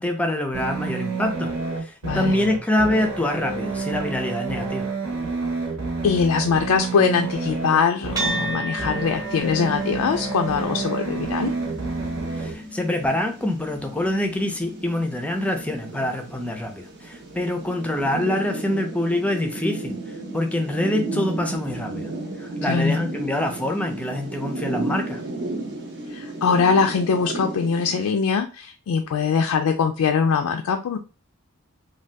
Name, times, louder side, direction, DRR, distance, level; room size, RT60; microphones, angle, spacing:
voice 1, 0.0-1.5 1.8-4.9 12.4-20.0 20.3-22.1 22.4-25.2, left 1 dB, 5° left, 4 dB, 0.4 m, -25 dB
sound 1, 0.5-12.5, right 4 dB, 75° right, 0.9 m, -29 dB
voice 2, 2.0-2.4 6.0-11.5 22.6-23.0 26.1-31.0, left 6 dB, 85° left, 5 dB, 0.3 m, -22 dB
sound 2, 8.2-16.8, right 1 dB, 15° right, 0.8 m, -35 dB
sound 3, 9.3-28.1, right 2 dB, 50° right, 0.7 m, -34 dB
2.7 x 2.2 x 3.2 m, 0.33 s
head